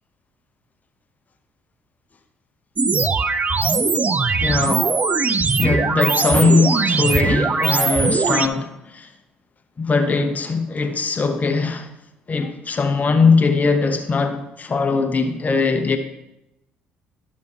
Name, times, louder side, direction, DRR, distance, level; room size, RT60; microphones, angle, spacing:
sound 1, 2.8-8.5, right 4 dB, 30° right, 0.5 m, -20 dB
voice 1, 4.4-5.0 5.6-9.1 9.8-11.9 12.3-16.0, left 4 dB, 35° left, 0.9 m, -20 dB
12.0 x 6.3 x 2.9 m
hypercardioid pair, 55°, 5 cm